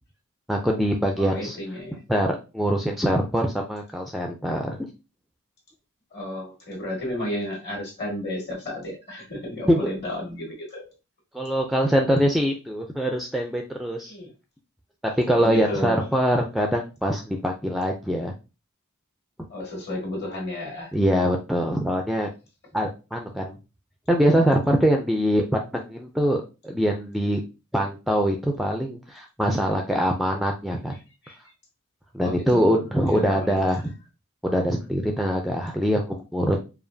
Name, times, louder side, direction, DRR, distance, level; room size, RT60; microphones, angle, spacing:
voice 1, 0.5-1.6 2.1-4.9 9.7-9.8 11.3-14.1 15.0-18.3 20.9-22.3 22.7-23.6 24.1-27.4 27.7-30.9 32.1-33.9 34.4-36.6, equal, ahead, 2 dB, 0.4 m, -23 dB
voice 2, 1.2-2.0 6.1-10.9 14.1-14.3 15.4-16.0 19.5-20.9 31.2-31.4 32.2-33.7, left 1 dB, 50° left, -2 dB, 1.9 m, -32 dB
4.9 x 2.4 x 2.7 m, 0.29 s
head